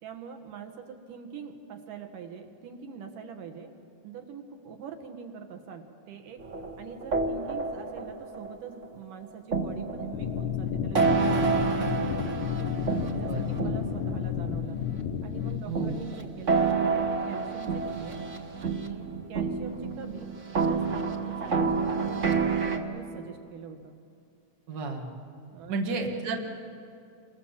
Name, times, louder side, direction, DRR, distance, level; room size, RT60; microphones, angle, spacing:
voice 1, 0.0-3.7 4.0-6.4 6.8-12.7 13.1-14.8 15.2-18.2 18.6-20.3 20.6-24.0 25.5-25.8, right 7 dB, 80° right, 5 dB, 3.1 m, -43 dB
sound 1, 6.4-8.9 9.5-14.9 15.8-22.8, right 4 dB, 55° right, 0.8 m, -29 dB
sound 2, 10.1-15.6, left 8 dB, 75° left, 1.2 m, -31 dB
voice 2, 13.0-13.7 15.7-15.9 24.7-25.1 25.7-26.4, right 3 dB, 40° right, 1 dB, 2.3 m, -33 dB
28.0 x 23.5 x 7.4 m, 2.4 s
omnidirectional pair, 3.8 m